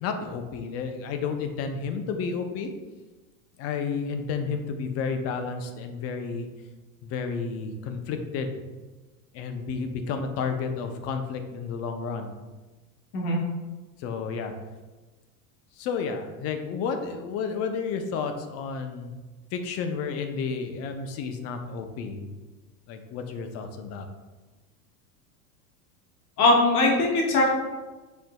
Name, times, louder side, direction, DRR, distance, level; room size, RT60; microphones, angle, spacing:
voice 1, 0.0-2.7 3.6-6.5 7.0-8.5 9.3-12.3 14.0-14.5 15.8-19.1 19.5-22.3 22.9-24.1, left 5 dB, 35° left, 6 dB, 0.4 m, -31 dB
voice 2, 26.4-27.5, left 2 dB, 85° left, -2 dB, 1.1 m, -20 dB
6.1 x 2.6 x 2.2 m, 1.2 s
supercardioid pair, 120°, 44 cm